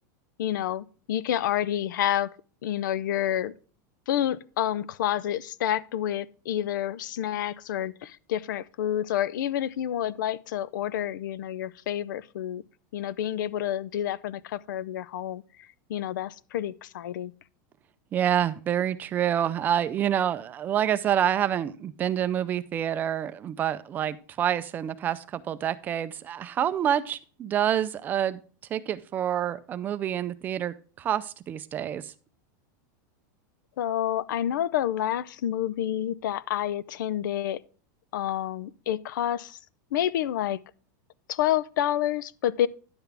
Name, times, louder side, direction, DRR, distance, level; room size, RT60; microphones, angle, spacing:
voice 1, 0.4-2.3 2.6-3.5 4.1-12.6 12.9-17.3 33.8-37.6 38.1-39.6 39.9-40.6 41.3-42.7, left 11 dB, 85° left, 0.6 m, -29 dB
voice 2, 18.1-28.4 28.7-32.1, right 10 dB, 15° right, 0.4 m, -27 dB
10.5 x 8.0 x 3.4 m
supercardioid pair, 170°, 10 cm